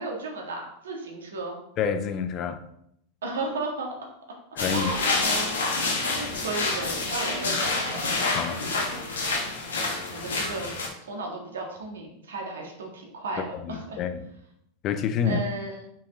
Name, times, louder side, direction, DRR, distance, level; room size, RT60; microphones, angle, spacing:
voice 1, 0.0-1.6 3.2-3.9 4.7-8.2 9.3-9.4 10.1-10.7 11.1-14.0 15.2-15.9, right 2 dB, 80° right, 0 dB, 1.6 m, -34 dB
voice 2, 1.8-2.6 4.6-4.9 8.3-8.6 13.4-14.3 14.8-15.4, left 7 dB, 45° left, 9 dB, 0.7 m, -28 dB
sound 1, 4.6-10.9, left 3 dB, 80° left, 1.4 m, -28 dB
5.3 x 5.1 x 3.7 m, 0.74 s
hypercardioid pair, 90°, 0 cm